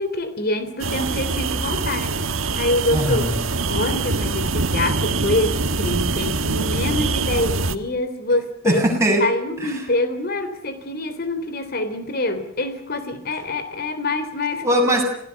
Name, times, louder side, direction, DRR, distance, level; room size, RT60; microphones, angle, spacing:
voice 1, 0.0-2.2 2.5-3.3 3.7-8.8 9.2-14.6, left 2 dB, 50° left, 10 dB, 3.3 m, -25 dB
sound 1, 0.8-7.8, right 3 dB, 75° right, 1.5 m, -24 dB
voice 2, 2.9-3.3 8.6-9.3 9.6-9.9 14.6-15.0, right 1 dB, 15° right, 0 dB, 7.5 m, -20 dB
27.0 x 18.0 x 7.1 m, 0.72 s
head